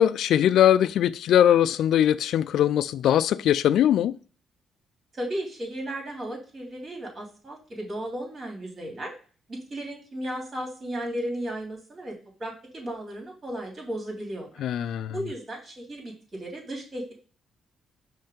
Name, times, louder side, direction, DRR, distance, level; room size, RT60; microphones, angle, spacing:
voice 1, 0.0-4.1 14.6-15.2, left 10 dB, 75° left, 0.3 m, -21 dB
voice 2, 5.1-9.1 9.5-12.1 12.4-14.5 15.1-17.1, right 1 dB, 40° right, 3.4 m, -35 dB
5.6 x 3.3 x 5.2 m
cardioid pair, 90°, 0 cm